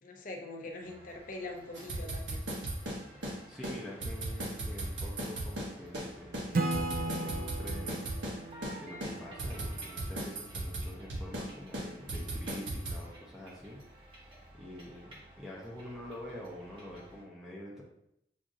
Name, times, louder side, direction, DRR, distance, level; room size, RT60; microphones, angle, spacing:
voice 1, 0.0-2.5, left 2 dB, 45° left, 3 dB, 0.6 m, -43 dB
sound 1, 0.8-17.2, right 1 dB, 30° right, 1.1 m, -54 dB
sound 2, 1.7-3.4 3.6-3.8 4.0-6.1 6.3-8.4 8.6-8.8 9.0-11.5 11.7-13.0, right 1 dB, 90° right, 1.2 m, -36 dB
voice 2, 3.5-8.1 8.4-13.8 14.1-17.8, left 1 dB, ahead, -5 dB, 0.7 m, -46 dB
Acoustic guitar / Strum, 6.5-10.1, right 2 dB, 50° right, 0.4 m, -36 dB
7.3 x 2.5 x 2.6 m, 0.77 s
head